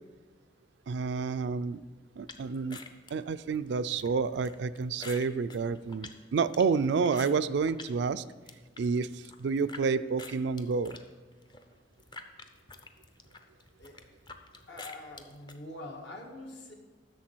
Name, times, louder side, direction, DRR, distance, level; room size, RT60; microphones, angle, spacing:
voice 1, 0.9-1.8 2.2-2.8 3.1-8.2 8.8-11.0, right 5 dB, 70° right, 14 dB, 0.3 m, -29 dB
sound 1, 2.3-7.9 8.3-9.8 10.2-15.6, left 3 dB, 25° left, 0.5 m, -48 dB
voice 2, 14.7-16.7, left 1 dB, 70° left, 0 dB, 1.7 m, -44 dB
11.5 x 6.7 x 4.5 m, 1.3 s
head